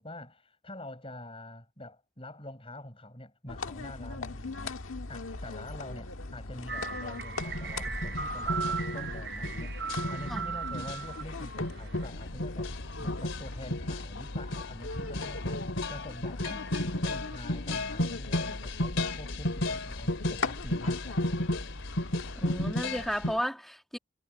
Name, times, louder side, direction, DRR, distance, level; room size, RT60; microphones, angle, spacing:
voice 1, 0.0-4.8 5.1-12.7 13.0-21.3, left 1 dB, 25° left, 7.9 m, -46 dB
sound 1, 3.5-22.7, left 3 dB, 90° left, 1.7 m, -40 dB
sound 2, 6.7-12.1, right 5 dB, 50° right, 0.9 m, -37 dB
sound 3, 7.4-23.4, left 1 dB, 70° left, 3.2 m, -34 dB
voice 2, 22.4-24.0, equal, ahead, 2.2 m, -33 dB
head